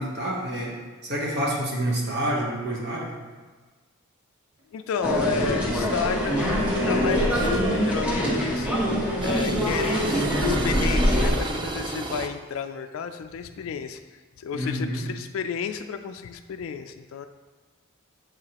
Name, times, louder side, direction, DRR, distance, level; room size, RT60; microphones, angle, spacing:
voice 1, 0.0-3.1 14.5-15.0, right 1 dB, 50° right, -3 dB, 1.1 m, -28 dB
voice 2, 4.7-8.7 9.2-17.3, left 6 dB, 65° left, 7 dB, 0.3 m, -32 dB
Wind instrument woodwind instrument, 4.9-8.4, left 1 dB, 75° right, 1.1 m, -35 dB
sound 1, 5.0-11.3, equal, 5° right, 0.8 m, -24 dB
sound 2, 7.3-12.3, right 2 dB, 20° right, 0.3 m, -34 dB
7.4 x 4.7 x 2.9 m, 1.3 s
head